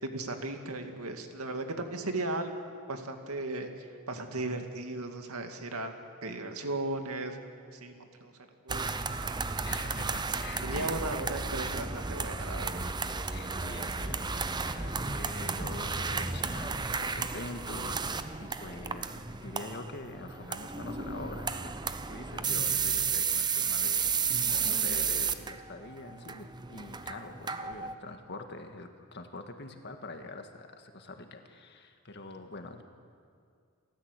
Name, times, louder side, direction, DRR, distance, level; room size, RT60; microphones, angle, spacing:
voice 1, 0.0-2.5 2.9-5.9 6.2-7.4 7.7-7.9 8.2-8.9 10.6-12.8, right 2 dB, 80° right, 5 dB, 2.2 m, -36 dB
sound 1, 8.7-27.9, right 5 dB, 20° right, 0.7 m, -33 dB
voice 2, 9.6-11.0 13.3-32.8, left 2 dB, 50° left, 6 dB, 1.8 m, -45 dB
28.5 x 14.0 x 8.3 m, 2.2 s
head